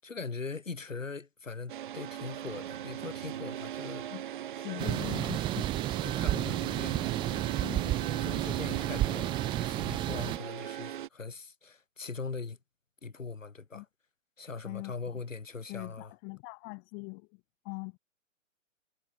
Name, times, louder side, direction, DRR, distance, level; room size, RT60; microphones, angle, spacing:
voice 1, 0.0-4.1 6.0-7.4 8.2-12.6 13.0-13.9 14.4-16.1, left 4 dB, 70° left, 7.7 m, -41 dB
sound 1, 1.7-11.1, right 11 dB, 40° right, 1.6 m, -39 dB
voice 2, 4.5-5.7 7.6-8.0 13.7-13.8 14.6-14.9 15.7-17.3 17.6-18.0, left 40 dB or more, 25° left, 3.4 m, -41 dB
sound 2, 4.8-10.4, right 14 dB, 10° right, 1.2 m, -32 dB
figure-of-eight pair, 135°, 39 cm